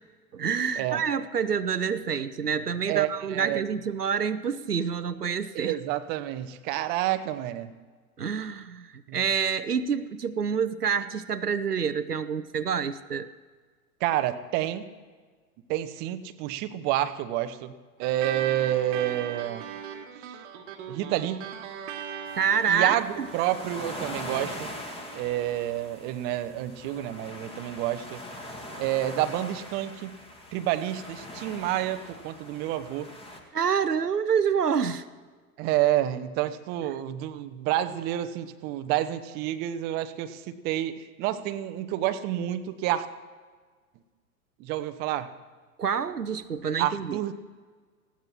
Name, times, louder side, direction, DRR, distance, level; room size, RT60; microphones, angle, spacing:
voice 1, 0.3-5.8 8.2-13.3 22.4-23.3 33.5-35.0 45.8-47.2, right 6 dB, 85° right, 12 dB, 0.7 m, -27 dB
voice 2, 2.9-3.6 5.5-7.7 9.1-9.2 14.0-14.9 15.7-19.7 20.2-20.4 20.9-21.5 22.7-23.1 23.3-24.7 25.1-28.2 28.8-30.2 30.5-33.1 35.6-43.1 44.6-45.3 46.8-47.3, right 13 dB, 20° right, 11 dB, 0.6 m, -29 dB
sound 1, 18.0-26.8, right 8 dB, 45° right, 1.2 m, -40 dB
sound 2, 22.3-33.4, left 1 dB, 10° left, 1.6 m, -42 dB
19.5 x 16.0 x 3.0 m, 1.5 s
figure-of-eight pair, 95°, 46 cm